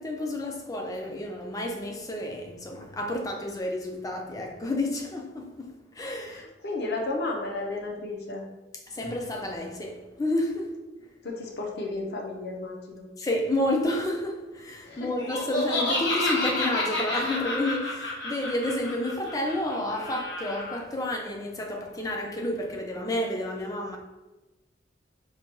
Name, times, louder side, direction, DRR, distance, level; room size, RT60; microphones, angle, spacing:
voice 1, 0.0-6.4 8.9-10.8 13.2-24.0, left 1 dB, 20° left, 0.4 m, -30 dB
voice 2, 6.2-8.4 11.2-13.0 14.8-15.1, left 2 dB, 65° left, 0.6 m, -33 dB
Laughter, 15.2-20.8, left 2 dB, 85° left, 1.0 m, -30 dB
4.5 x 2.2 x 2.9 m
head